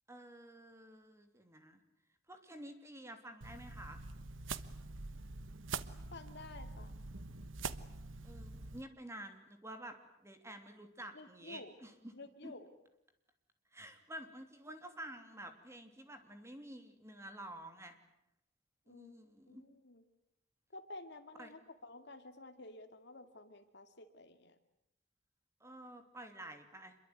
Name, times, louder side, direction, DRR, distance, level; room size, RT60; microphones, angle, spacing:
voice 1, 0.1-1.8 2.3-4.0 8.2-12.1 12.4-12.5 13.7-18.0 18.9-19.6 21.4-21.5 25.6-27.0, right 1 dB, 15° right, 7 dB, 3.0 m, -50 dB
sound 1, 3.4-8.8, right 4 dB, 85° right, 1.3 m, -45 dB
voice 2, 6.1-6.9 11.1-11.7 12.1-12.7 18.9-19.1 19.5-20.0 20.7-24.6, left 2 dB, 60° left, 8 dB, 2.6 m, -52 dB
27.0 x 23.0 x 9.4 m, 0.81 s
head